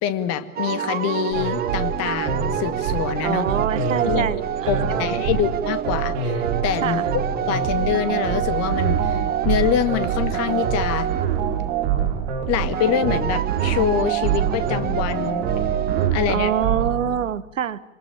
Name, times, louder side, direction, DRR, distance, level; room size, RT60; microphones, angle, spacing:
voice 1, 0.0-3.5 4.1-4.3 4.7-7.0 7.5-11.1 12.5-15.5 16.1-16.5, left 10 dB, 40° left, 2.2 m, -25 dB
sound 1, 0.6-16.1, right 10 dB, 20° right, 1.2 m, -28 dB
sound 2, 1.3-17.2, right 7 dB, 50° right, 4.2 m, -25 dB
voice 2, 3.2-5.2 6.8-7.1 16.3-17.8, right 9 dB, 70° right, 1.4 m, -25 dB
26.0 x 20.0 x 8.8 m
figure-of-eight pair, 95°, 40 cm